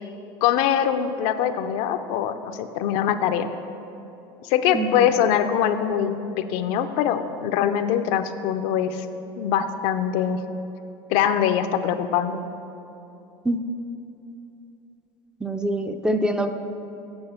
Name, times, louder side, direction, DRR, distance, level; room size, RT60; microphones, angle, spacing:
voice 1, 0.4-3.5 4.4-9.1 9.4-10.4 11.1-12.4, left 9 dB, 65° left, 9 dB, 0.5 m, -23 dB
voice 2, 4.7-5.1 13.4-13.6 15.4-16.5, right 1 dB, 5° right, 6 dB, 0.5 m, -24 dB
8.7 x 6.5 x 5.7 m, 2.8 s
supercardioid pair, 110°, 12 cm